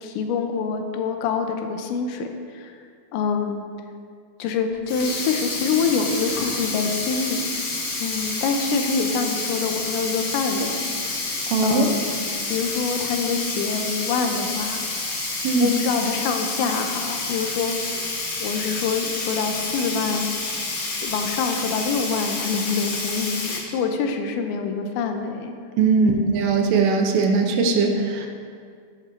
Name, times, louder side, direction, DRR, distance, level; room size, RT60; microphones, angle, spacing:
voice 1, 0.0-2.3 2.5-2.7 3.1-3.6 4.4-7.7 8.0-11.1 11.6-12.1 12.5-14.9 15.6-17.7 18.4-20.3 20.9-25.5 26.0-26.4, left 5 dB, 85° left, 5 dB, 3.0 m, -26 dB
Sink (filling or washing), 4.7-23.6, left 3 dB, 55° left, 1.7 m, -29 dB
voice 2, 11.5-11.9 15.4-15.8 25.8-28.3, right 4 dB, 75° right, 3 dB, 2.8 m, -20 dB
14.5 x 11.0 x 2.7 m, 2.2 s
omnidirectional pair, 5.3 m